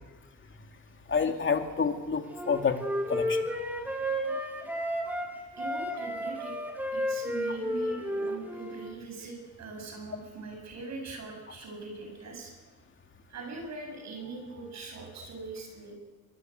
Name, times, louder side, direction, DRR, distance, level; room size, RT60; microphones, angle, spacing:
voice 1, 1.1-2.8 3.1-3.4, left 5 dB, 40° left, 5 dB, 2.8 m, -28 dB
Wind instrument woodwind instrument, 2.3-5.3 5.6-8.9, equal, 5° right, 5.7 m, -32 dB
voice 2, 3.4-4.4 5.6-6.6 6.9-12.7 13.3-16.0, right 3 dB, 65° right, 2 dB, 7.9 m, -42 dB
22.5 x 21.5 x 8.1 m, 1.3 s
cardioid pair, 90°, 30 cm